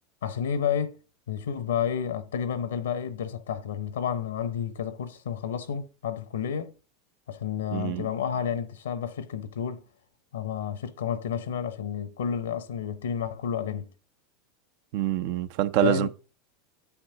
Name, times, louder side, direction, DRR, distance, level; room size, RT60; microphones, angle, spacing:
voice 1, 0.2-1.0 1.3-6.7 7.3-9.8 10.3-13.9 15.8-16.1, left 8 dB, 80° left, 0.8 m, -30 dB
voice 2, 7.7-8.1 14.9-16.1, right 13 dB, 60° right, 0.6 m, -25 dB
9.8 x 6.0 x 3.8 m
hypercardioid pair, 85°, 0 cm